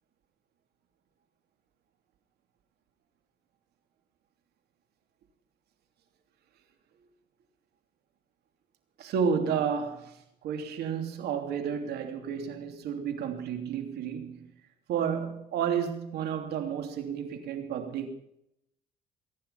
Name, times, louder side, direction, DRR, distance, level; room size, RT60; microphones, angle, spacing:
voice 1, 9.0-10.1 10.4-14.5 14.9-18.1, right 7 dB, 75° right, 3.1 m, -31 dB
22.5 x 10.5 x 5.7 m
cardioid pair, 110°, 17 cm